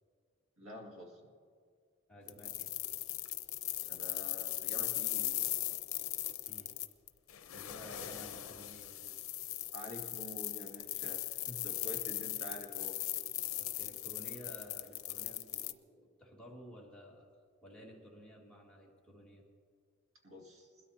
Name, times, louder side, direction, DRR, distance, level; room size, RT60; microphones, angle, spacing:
voice 1, 0.6-1.3 3.8-5.5 9.7-13.0 20.2-20.7, equal, 80° right, 0 dB, 2.3 m, -48 dB
voice 2, 2.1-2.7 6.5-6.8 7.5-9.2 13.6-17.3 17.6-19.4, equal, 5° left, -4 dB, 1.9 m, -53 dB
sound 1, 2.3-15.7, left 15 dB, 80° left, 0.6 m, -39 dB
22.0 x 13.0 x 2.8 m, 2.1 s
head